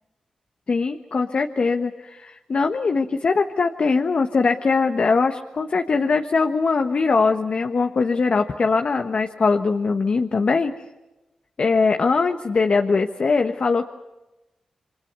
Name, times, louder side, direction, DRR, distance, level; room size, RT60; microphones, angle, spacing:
voice 1, 0.7-10.7 11.6-13.8, left 4 dB, 60° left, 6 dB, 1.3 m, -21 dB
28.5 x 24.0 x 6.9 m, 1.0 s
supercardioid pair, 40°, 2 cm